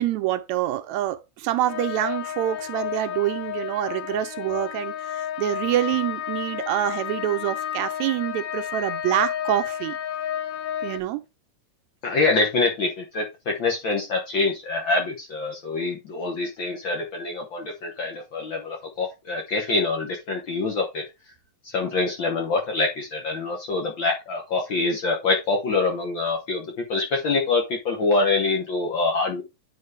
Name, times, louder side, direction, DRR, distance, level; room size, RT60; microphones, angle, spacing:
voice 1, 0.0-10.0 10.8-11.2, right 13 dB, 80° right, 1.8 m, -26 dB
sound 1, 1.7-11.0, left 10 dB, 75° left, 2.1 m, -31 dB
voice 2, 12.0-21.0 21.6-29.4, left 3 dB, 60° left, 1.3 m, -25 dB
9.5 x 4.5 x 3.3 m
omnidirectional pair, 3.4 m